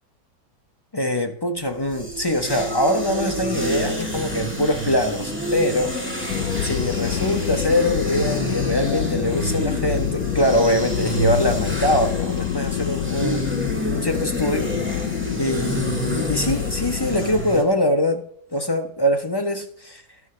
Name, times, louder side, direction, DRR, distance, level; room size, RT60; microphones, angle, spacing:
voice 1, 0.9-6.0 6.6-13.5 13.8-15.1 15.4-18.2 18.5-20.0, left 1 dB, 35° left, 0.4 m, -23 dB
sound 1, 1.7-17.6, right 1 dB, 5° right, 1.8 m, -28 dB
sound 2, 6.3-17.4, left 12 dB, 80° left, 1.2 m, -27 dB
13.0 x 12.0 x 3.2 m
omnidirectional pair, 1.8 m